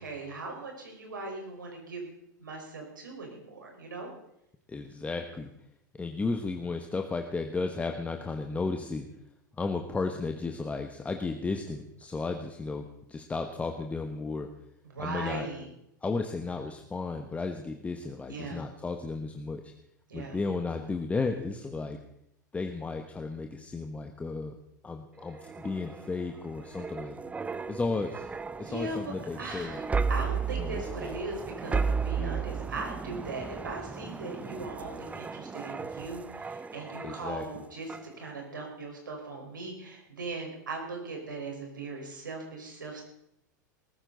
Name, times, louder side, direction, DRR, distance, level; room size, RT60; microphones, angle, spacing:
voice 1, 0.0-2.1 2.4-4.1 14.8-15.7 18.3-18.6 20.1-20.4 28.6-29.8 30.1-43.0, right 3 dB, 80° right, 1 dB, 4.8 m, -39 dB
voice 2, 4.7-5.5 5.9-9.1 9.6-14.5 15.0-15.5 16.0-19.7 20.1-22.0 22.5-24.6 24.8-27.2 27.7-28.3 28.6-29.8 30.6-31.2 32.1-32.5 37.0-37.4, left 3 dB, 15° left, 5 dB, 1.3 m, -34 dB
sound 1, 25.2-37.5 37.9-38.1, right 5 dB, 15° right, 0.7 m, -35 dB
20.0 x 14.0 x 4.0 m, 0.78 s
figure-of-eight pair, 90°, 10 cm